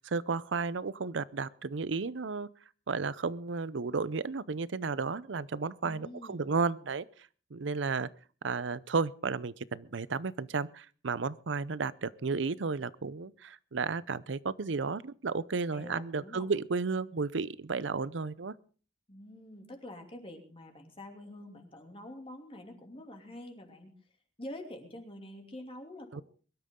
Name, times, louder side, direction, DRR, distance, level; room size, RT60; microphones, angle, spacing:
voice 1, 0.0-2.5 2.9-7.0 7.5-8.1 8.4-18.5 26.1-26.2, right 4 dB, 85° right, 19 dB, 0.7 m, -33 dB
voice 2, 5.8-6.5 15.7-16.5 19.1-23.9 24.4-26.2, left 1 dB, 30° left, 3 dB, 2.7 m, -46 dB
23.0 x 12.5 x 3.7 m, 0.39 s
head